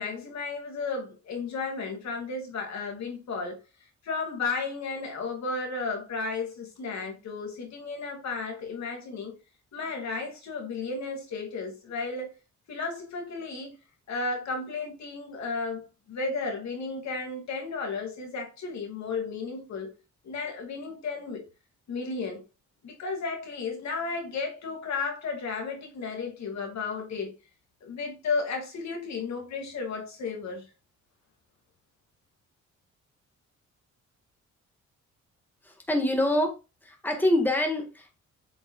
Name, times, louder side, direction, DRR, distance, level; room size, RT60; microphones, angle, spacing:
voice 1, 0.0-3.6 4.0-9.4 9.7-12.3 12.7-13.8 14.1-20.0 20.2-21.4 21.9-22.4 22.8-27.3 27.8-30.7, left 4 dB, 65° left, 2.4 m, -33 dB
voice 2, 35.6-36.6 36.8-38.2, left 1 dB, 5° left, 1.7 m, -26 dB
8.0 x 5.4 x 2.4 m
cardioid pair, 90°, 30 cm